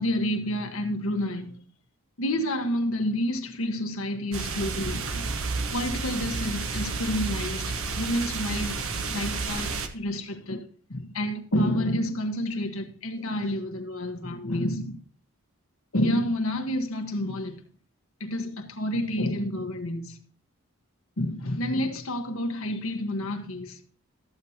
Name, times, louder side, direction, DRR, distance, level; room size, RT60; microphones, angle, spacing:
voice 1, 0.0-1.7 2.2-5.4 5.7-15.0 15.9-17.6 18.2-20.2 21.2-23.8, left 1 dB, 70° left, 1.4 m, -29 dB
sound 1, 4.3-9.9, right 4 dB, 70° right, 1.1 m, -31 dB
13.5 x 8.0 x 2.9 m
head